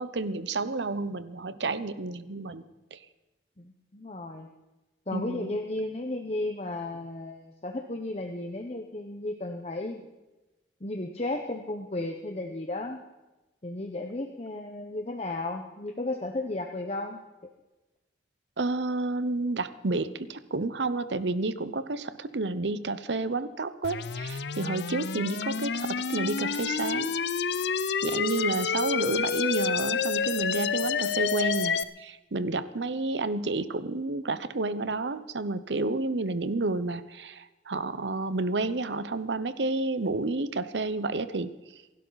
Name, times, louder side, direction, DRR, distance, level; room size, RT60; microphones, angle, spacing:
voice 1, 0.0-2.6 2.9-3.0 5.1-5.6 18.6-27.1 28.0-41.5, right 3 dB, 85° right, 14 dB, 0.8 m, -30 dB
voice 2, 3.6-4.5 5.1-10.1 10.8-13.0 13.6-17.2, left 2 dB, 35° left, 3 dB, 1.0 m, -34 dB
sound 1, 23.8-31.8, left 6 dB, 75° left, 0.6 m, -29 dB
28.0 x 11.5 x 4.1 m, 1.1 s
head